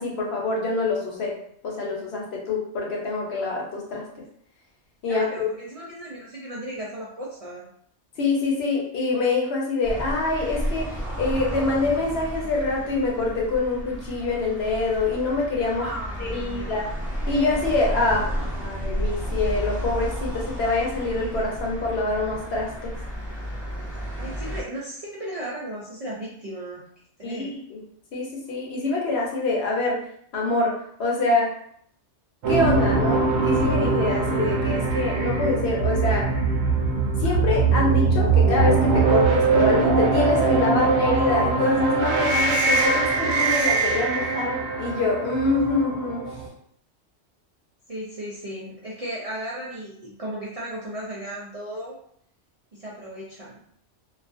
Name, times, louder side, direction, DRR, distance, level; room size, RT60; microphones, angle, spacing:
voice 1, 0.0-1.3 1.6-4.0 5.0-5.3 8.2-10.9 11.2-15.8 16.2-16.9 17.3-18.2 18.6-22.9 27.2-27.8 28.1-30.0 30.3-31.5 32.5-36.3 37.2-46.2, left 3 dB, 65° left, -3 dB, 0.9 m, -25 dB
voice 2, 5.1-7.7 15.8-16.7 18.0-18.4 24.2-26.8 27.2-27.6 47.9-52.0 52.7-53.6, right 1 dB, 55° right, -6 dB, 0.4 m, -35 dB
sound 1, 9.8-24.6, equal, ahead, 1.1 m, -32 dB
sound 2, 32.4-46.5, right 4 dB, 70° right, 0.8 m, -22 dB
2.3 x 2.3 x 2.4 m, 0.66 s
omnidirectional pair, 1.2 m